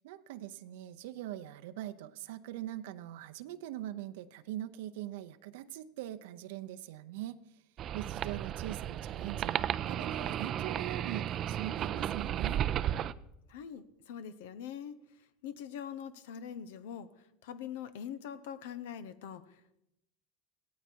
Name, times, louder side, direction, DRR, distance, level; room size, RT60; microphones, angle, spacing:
voice 1, 0.0-7.6 7.9-12.6, right 13 dB, 80° right, 9 dB, 0.7 m, -42 dB
sound 1, 7.8-13.1, right 10 dB, 40° right, 0.5 m, -34 dB
voice 2, 13.5-19.8, left 8 dB, 80° left, 13 dB, 1.0 m, -44 dB
16.5 x 13.5 x 4.6 m, 0.85 s
supercardioid pair, 130°, 0 cm